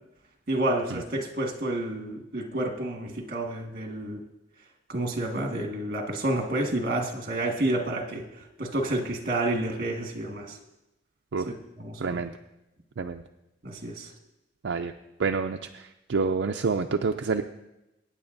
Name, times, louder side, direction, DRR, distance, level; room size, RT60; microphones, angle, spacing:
voice 1, 0.5-4.2 4.9-8.3 8.6-10.6 11.5-12.2 13.6-14.1, right 1 dB, 50° right, 2 dB, 1.7 m, -29 dB
voice 2, 12.0-12.3 13.0-13.2 14.6-14.9 15.2-15.8 16.1-17.4, right 4 dB, 75° right, 5 dB, 0.5 m, -27 dB
22.5 x 9.3 x 2.6 m, 0.93 s
head